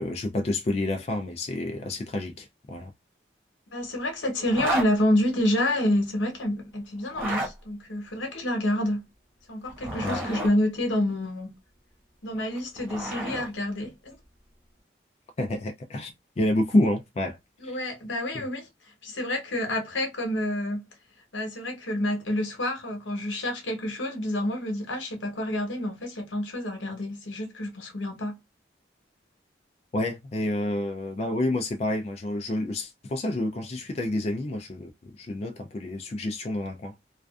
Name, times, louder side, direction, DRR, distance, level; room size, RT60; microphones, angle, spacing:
voice 1, 0.0-2.9 10.0-10.3 15.4-17.4 17.6-17.7 18.3-18.4 29.9-36.9, left 1 dB, 35° left, 0.3 m, -29 dB
voice 2, 3.7-9.0 9.5-11.6 12.2-14.2 17.6-20.8 21.3-28.4, left 1 dB, 90° left, 1.0 m, -28 dB
Zipper (clothing), 4.5-4.9 7.0-7.5 9.6-10.5 12.4-13.5, right 1 dB, 10° right, 1.1 m, -31 dB
2.4 x 2.3 x 2.3 m
head